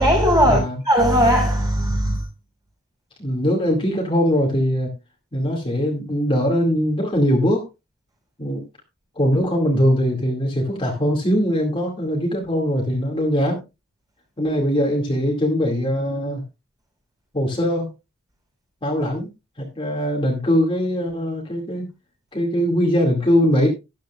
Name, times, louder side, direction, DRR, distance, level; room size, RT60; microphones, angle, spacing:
voice 1, 0.0-2.3, equal, 20° right, 6.0 m, -18 dB
voice 2, 3.2-4.9 5.3-7.7 8.4-8.6 9.2-13.6 14.4-16.4 17.3-17.9 18.8-19.3 19.6-21.9 22.3-23.7, equal, 25° left, 2.3 m, -21 dB
13.0 x 11.5 x 2.4 m
head